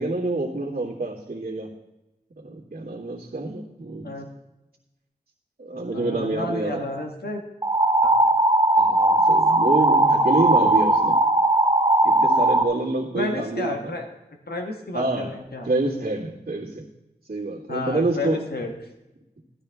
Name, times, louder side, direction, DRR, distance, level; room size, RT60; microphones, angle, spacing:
voice 1, 0.0-1.7 2.4-4.3 5.6-6.9 8.8-11.2 12.0-13.9 14.9-15.3 15.6-16.8 17.3-18.4, right 2 dB, 85° right, -10 dB, 2.2 m, -27 dB
voice 2, 5.9-7.4 8.0-8.1 9.7-10.3 13.1-14.1 14.5-15.7 17.7-18.7, left 2 dB, 80° left, 2 dB, 1.4 m, -31 dB
sound 1, 7.6-12.6, right 2 dB, 25° right, 0.9 m, -18 dB
13.0 x 13.0 x 3.5 m, 0.97 s
wide cardioid pair, 55°, 16 cm